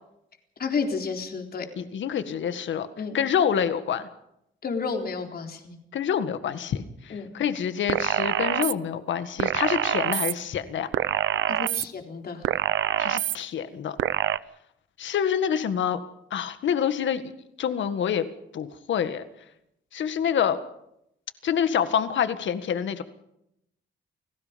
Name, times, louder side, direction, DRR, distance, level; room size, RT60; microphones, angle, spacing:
voice 1, 0.6-1.7 3.0-3.2 4.6-5.8 7.1-7.3 11.5-12.4, left 5 dB, 55° left, 4 dB, 4.0 m, -31 dB
voice 2, 1.8-2.9 3.1-4.1 5.9-10.9 13.0-14.0 15.0-16.0 16.3-17.2 17.6-18.2 18.5-19.2 19.9-20.6 21.4-23.0, left 8 dB, 80° left, 11 dB, 1.8 m, -27 dB
sound 1, 7.9-8.7 9.4-10.3 10.9-11.8 12.4-13.4 14.0-14.4, right 12 dB, 90° right, 0.7 m, -25 dB
29.0 x 19.0 x 5.3 m, 0.79 s
cardioid pair, 115°, 19 cm